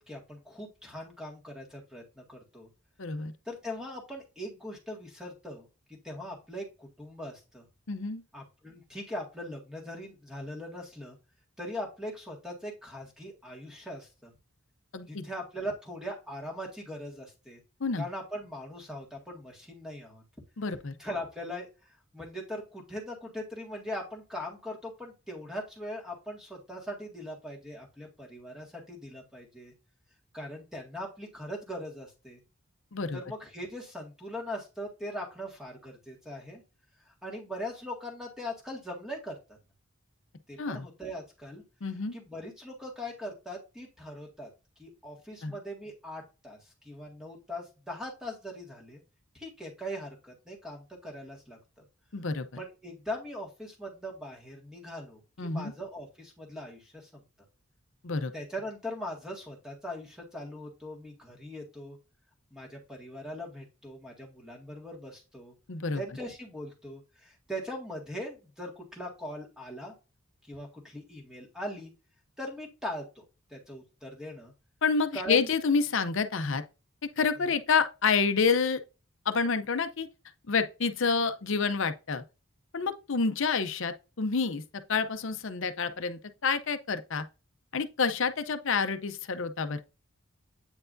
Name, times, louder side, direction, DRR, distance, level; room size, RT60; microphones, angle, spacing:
voice 1, 0.0-2.7 3.5-7.6 8.3-11.2 11.6-14.3 15.1-17.6 18.0-20.2 21.0-29.7 30.3-32.4 33.1-36.6 37.0-39.6 40.5-41.6 42.1-44.5 44.8-49.0 49.3-51.6 52.6-57.2 58.3-62.0 62.5-65.5 65.9-69.9 70.5-71.9 72.4-73.2 73.5-74.5 75.1-75.5 77.5-77.6, equal, 5° right, 1.8 m, -40 dB
voice 2, 3.0-3.3 7.9-8.2 14.9-15.2 17.8-18.1 20.6-20.9 32.9-33.2 40.6-40.9 41.8-42.1 45.4-45.6 52.1-52.5 55.4-55.7 58.0-58.3 65.7-66.0 74.8-76.6 77.2-78.8 79.3-80.1 80.5-82.2 82.7-84.6 84.9-87.2 87.7-89.8, left 5 dB, 60° left, 0.6 m, -28 dB
8.8 x 4.6 x 2.6 m
head